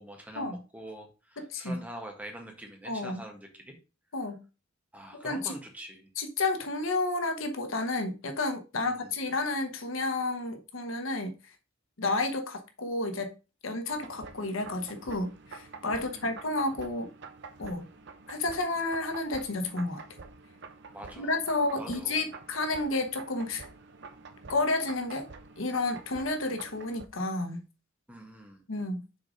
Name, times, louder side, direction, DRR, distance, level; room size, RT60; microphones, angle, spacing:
voice 1, 0.0-3.8 4.9-6.1 8.7-9.1 15.9-16.3 20.9-21.4 21.8-22.3 28.1-28.6, right 1 dB, 10° right, 1.6 m, -45 dB
voice 2, 1.4-1.8 2.8-3.2 4.1-4.4 5.1-5.6 6.2-11.3 12.0-13.3 13.6-17.1 17.6-17.8 18.3-20.0 21.2-23.7 24.5-25.3 25.6-27.6 28.7-29.0, left 2 dB, 85° left, 1.1 m, -31 dB
sound 1, 13.9-27.0, right 4 dB, 60° right, 0.8 m, -48 dB
6.7 x 3.8 x 5.0 m
head